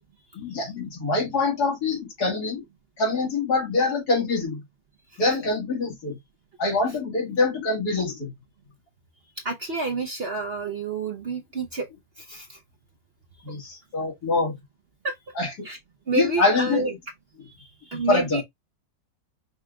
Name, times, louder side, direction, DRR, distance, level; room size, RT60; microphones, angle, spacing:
voice 1, 0.3-2.6 3.0-4.6 5.2-6.2 6.6-8.3 13.4-14.6 15.4-15.7 16.2-16.8 17.9-18.4, left 3 dB, 70° left, 2.3 m, -25 dB
voice 2, 9.4-11.9 12.2-12.6 15.0-15.1 15.6-15.8 16.1-16.9 17.5-18.4, right 3 dB, 55° right, 0.7 m, -29 dB
5.6 x 2.3 x 3.5 m
omnidirectional pair, 1.7 m